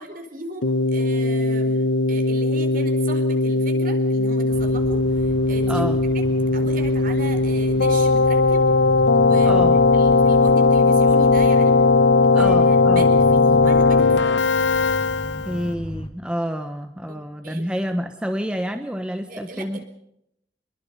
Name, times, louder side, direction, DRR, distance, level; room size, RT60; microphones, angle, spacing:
voice 1, 0.0-5.9 6.1-6.2 6.5-8.7 9.2-11.8 12.2-14.4 17.1-17.6 19.3-19.8, right 1 dB, 50° right, 6 dB, 4.5 m, -37 dB
Keyboard (musical), 0.6-15.7, left 3 dB, 90° left, 1.2 m, -18 dB
sound 1, 4.5-16.1, left 1 dB, 30° left, 1.8 m, -36 dB
voice 2, 5.7-6.0 9.4-9.8 12.3-13.1 15.4-19.8, equal, 5° right, 6 dB, 1.1 m, -28 dB
26.5 x 21.5 x 5.6 m, 0.78 s
head